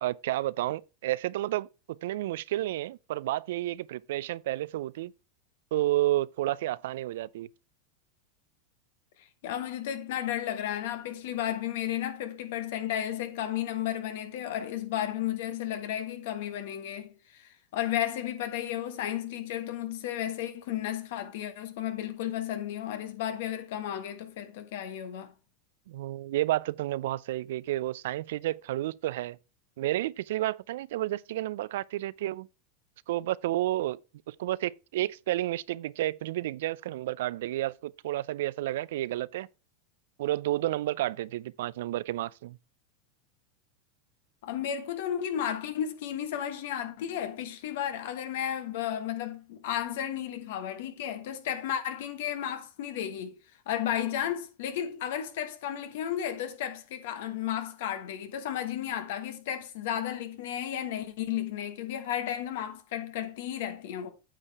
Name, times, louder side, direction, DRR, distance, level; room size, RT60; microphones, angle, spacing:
voice 1, 0.0-5.1 5.7-7.5 25.9-29.4 29.8-32.5 33.1-34.0 34.3-39.5 40.2-42.6, right 15 dB, 75° right, 0.3 m, -31 dB
voice 2, 9.2-25.3 44.4-53.4 53.7-64.1, left 10 dB, 70° left, 1.3 m, -33 dB
9.0 x 6.4 x 3.4 m
hypercardioid pair, 115°, 0 cm